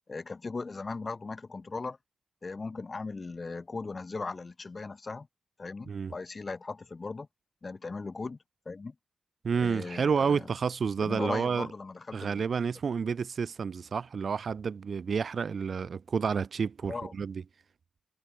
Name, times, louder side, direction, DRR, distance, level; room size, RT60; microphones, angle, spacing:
voice 1, 0.1-2.0 2.4-5.3 5.6-7.3 7.6-8.4 8.7-8.9 9.6-10.5 11.0-12.5 16.9-17.1, left 3 dB, 45° left, 2.5 m, -38 dB
voice 2, 9.4-11.7 12.1-17.4, right 6 dB, 65° right, 0.9 m, -30 dB
cardioid pair, 50°, 0 cm